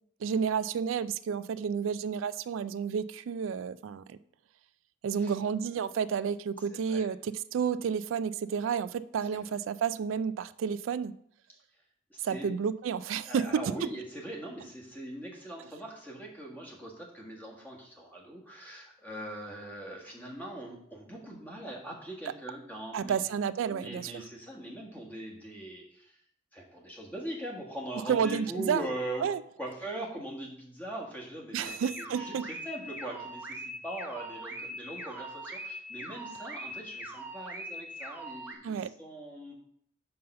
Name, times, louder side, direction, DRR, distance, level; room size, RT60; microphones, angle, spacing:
voice 1, 0.2-4.2 5.0-11.1 12.2-13.6 22.9-24.2 28.1-28.8 29.2-29.4 31.5-32.4 38.6-38.9, right 7 dB, 85° right, 15 dB, 0.3 m, -31 dB
voice 2, 6.7-7.1 9.3-9.4 12.1-12.5 13.2-23.2 23.7-26.1 26.5-29.2 29.6-39.5, right 1 dB, 10° left, -1 dB, 1.6 m, -41 dB
sound 1, 31.6-38.5, right 1 dB, 10° right, 0.8 m, -42 dB
5.6 x 5.4 x 6.5 m, 0.69 s
head